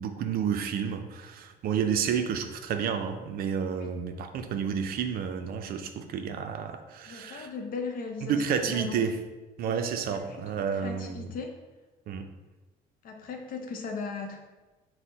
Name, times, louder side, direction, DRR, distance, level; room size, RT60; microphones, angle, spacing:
voice 1, 0.0-7.5 8.2-9.1 9.6-11.3 12.1-12.3, right 7 dB, 60° right, 7 dB, 0.4 m, -30 dB
voice 2, 7.1-9.0 9.6-11.6 13.0-14.4, left 4 dB, 55° left, 3 dB, 0.6 m, -38 dB
4.4 x 2.1 x 3.8 m, 1.2 s
cardioid pair, 110°, 17 cm